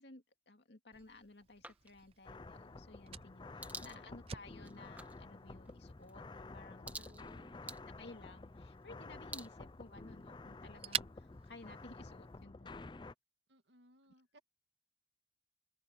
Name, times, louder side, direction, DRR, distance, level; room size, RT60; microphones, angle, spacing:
voice 1, 0.0-7.1 8.0-12.9, left 2 dB, 70° left, 2.2 m, -56 dB
Fire, 0.9-12.4, right 9 dB, 30° right, 0.4 m, -50 dB
sound 1, 1.6-10.4, right 2 dB, 10° right, 1.9 m, -54 dB
sound 2, 2.2-13.1, left 3 dB, 25° left, 0.5 m, -51 dB
voice 2, 3.6-4.1 6.8-7.6 13.5-14.4, right 1 dB, 80° right, 2.1 m, -65 dB
open air
head